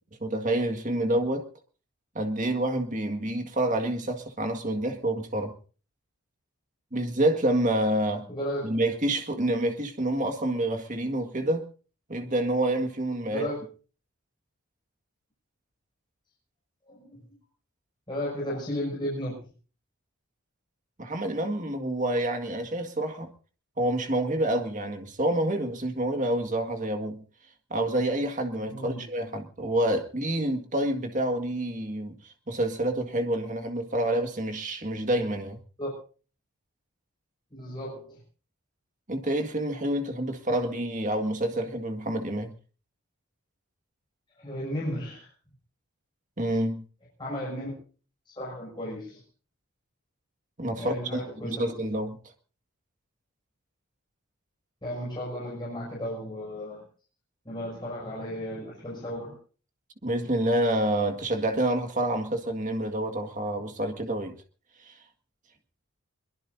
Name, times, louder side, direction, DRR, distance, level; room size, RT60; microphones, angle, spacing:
voice 1, 0.2-1.4 2.2-5.6 6.9-8.3 8.6-11.7 12.1-13.5 21.0-23.3 23.8-27.2 27.7-32.2 32.5-35.6 39.1-42.5 46.4-46.8 50.6-52.2 60.0-64.4 64.9-65.0, right 1 dB, 35° right, 1.8 m, -28 dB
voice 2, 8.3-8.7 13.3-13.6 16.9-17.4 18.1-19.4 28.7-29.0 35.8-35.9 37.5-38.2 44.4-45.3 47.2-47.7 48.3-49.2 50.8-51.9 54.8-56.9 57.4-59.4, equal, 20° left, 6.3 m, -34 dB
22.5 x 21.5 x 2.7 m
head